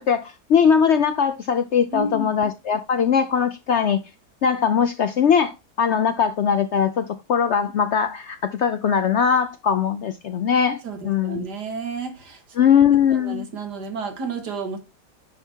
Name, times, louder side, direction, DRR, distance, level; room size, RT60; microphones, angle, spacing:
voice 1, 0.0-4.0 4.4-11.4 12.6-13.4, left 7 dB, 70° left, 0.6 m, -20 dB
voice 2, 1.9-2.3 10.8-12.4 13.1-14.8, right 3 dB, 90° right, 2.2 m, -31 dB
9.7 x 3.5 x 4.5 m
omnidirectional pair, 1.7 m